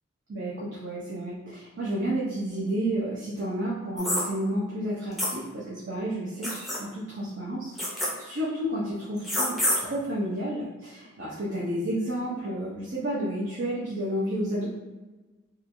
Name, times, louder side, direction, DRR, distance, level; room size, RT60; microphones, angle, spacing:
voice 1, 0.3-14.7, right 1 dB, 55° right, -7 dB, 0.6 m, -31 dB
sound 1, 4.0-4.2 5.2-5.3 6.4-6.8 7.8-8.1 9.2-9.8, left 1 dB, ahead, 0.5 m, -26 dB
3.0 x 2.3 x 2.5 m, 1.2 s
head